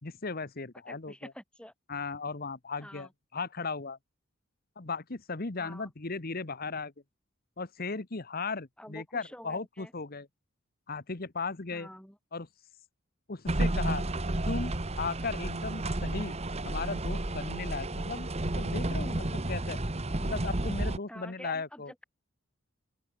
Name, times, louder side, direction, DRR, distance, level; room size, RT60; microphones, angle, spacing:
voice 1, 0.0-1.3 1.9-4.0 4.8-6.9 7.6-10.3 10.9-11.9 12.3-12.5 13.3-14.0 14.4-16.4 16.6-18.3 18.6-19.8 20.2-21.9, left 4 dB, 45° left, 1.2 m, -36 dB
voice 2, 0.9-1.7 2.8-3.1 5.6-5.9 8.8-9.9 11.7-12.2 21.1-22.0, left 1 dB, 5° left, 6.1 m, -47 dB
sound 1, 13.5-21.0, right 1 dB, 30° right, 1.4 m, -31 dB
open air
head